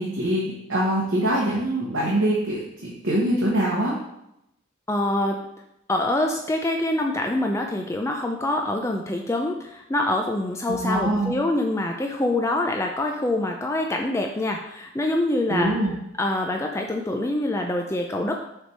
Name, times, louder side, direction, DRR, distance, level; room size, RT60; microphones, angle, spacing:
voice 1, 0.0-4.0 10.7-11.3 15.5-15.9, right 1 dB, 70° right, -4 dB, 1.2 m, -24 dB
voice 2, 4.9-5.4 5.9-15.7 16.2-18.4, left 1 dB, 15° left, 2 dB, 0.4 m, -25 dB
6.6 x 3.4 x 4.5 m, 0.83 s
head